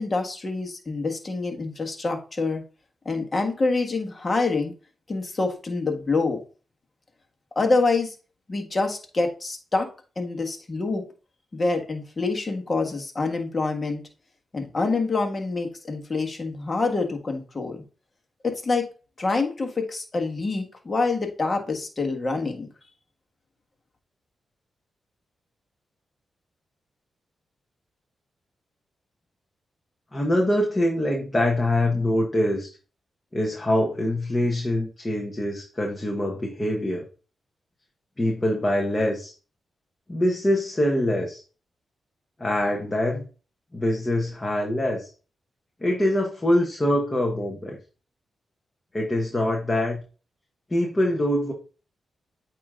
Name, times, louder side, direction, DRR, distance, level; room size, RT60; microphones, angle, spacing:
voice 1, 0.0-2.6 3.0-4.7 5.1-6.4 7.5-8.1 8.5-9.9 10.1-11.0 11.5-14.0 14.5-17.8 18.4-18.9 19.2-22.7, left 3 dB, 40° left, 4 dB, 1.6 m, -26 dB
voice 2, 30.1-32.7 33.3-37.0 38.2-39.3 40.1-41.4 42.4-43.2 43.7-45.1 45.8-47.8 48.9-50.0 50.7-51.5, left 1 dB, 25° left, 0 dB, 1.4 m, -24 dB
8.6 x 3.1 x 3.7 m, 0.36 s
cardioid pair, 55°, 0 cm